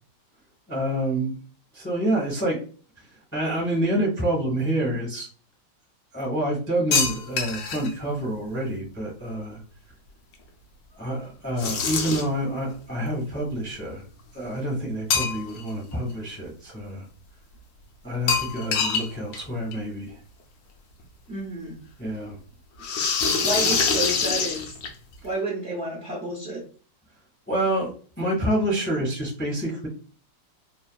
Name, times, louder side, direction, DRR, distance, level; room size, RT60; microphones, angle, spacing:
voice 1, 0.7-1.3 1.7-2.6 3.3-5.3 6.1-9.6 11.0-14.0 14.3-17.0 18.0-20.2 22.0-22.4 27.5-29.9, right 1 dB, 10° left, -2 dB, 0.5 m, -27 dB
sound 1, 6.9-7.9 11.6-12.4 15.1-15.7 16.1-16.2 18.3-19.1 19.3-19.4 19.7-19.8 21.0-21.1 22.8-25.1, left 5 dB, 75° left, 1.3 m, -24 dB
voice 2, 21.3-21.8 23.4-24.8 25.2-26.6, right 2 dB, 60° right, -4 dB, 0.7 m, -30 dB
3.4 x 2.2 x 2.2 m, 0.40 s
omnidirectional pair, 2.0 m